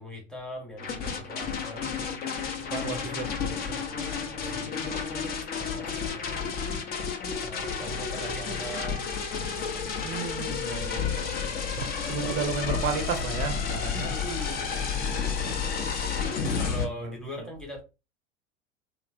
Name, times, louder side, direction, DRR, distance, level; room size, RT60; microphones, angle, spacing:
voice 1, 0.0-2.2 2.8-3.2 4.1-5.3 5.6-6.6 6.9-7.0 7.4-10.1 12.1-12.5 13.9-15.6 16.6-17.8, equal, ahead, 0.9 m, -41 dB
sound 1, 0.8-16.9, left 6 dB, 25° left, 0.6 m, -31 dB
voice 2, 2.7-4.1 4.5-4.7 10.0-14.1 17.0-17.5, right 5 dB, 35° right, 0.6 m, -34 dB
3.0 x 2.0 x 2.4 m
figure-of-eight pair, 85°, 38 cm